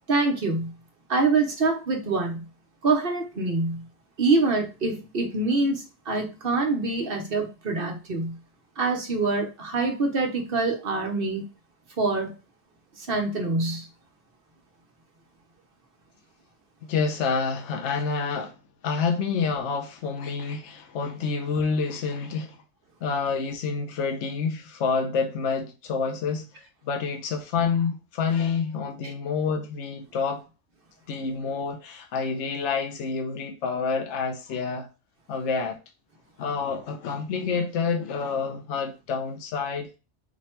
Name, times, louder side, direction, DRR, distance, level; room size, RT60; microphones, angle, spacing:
voice 1, 0.1-0.7 1.1-2.5 2.8-3.8 4.2-8.4 8.8-11.5 12.0-12.3 12.9-13.9 29.0-29.1, right 3 dB, 55° right, 1.1 m, -25 dB
voice 2, 16.8-18.5 18.8-22.6 23.0-26.5 26.8-30.4 31.1-34.9 35.3-35.8 36.4-39.9, left 5 dB, 85° left, 1.0 m, -28 dB
5.0 x 2.3 x 4.3 m
omnidirectional pair, 1.2 m